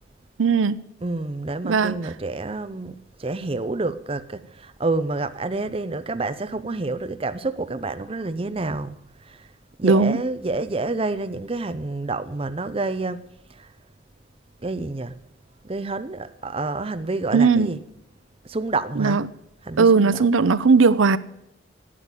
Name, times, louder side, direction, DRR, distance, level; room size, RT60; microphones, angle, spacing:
voice 1, 0.4-0.8 1.6-2.0 9.8-10.2 17.3-17.7 19.0-19.2 19.8-21.2, right 4 dB, 85° right, 0.6 m, -17 dB
voice 2, 1.0-9.0 9.2-9.5 9.8-13.2 13.6-13.7 14.6-15.2 15.6-17.8 18.4-19.2 19.6-20.2, right 3 dB, 30° right, 0.6 m, -28 dB
12.0 x 8.5 x 8.9 m
head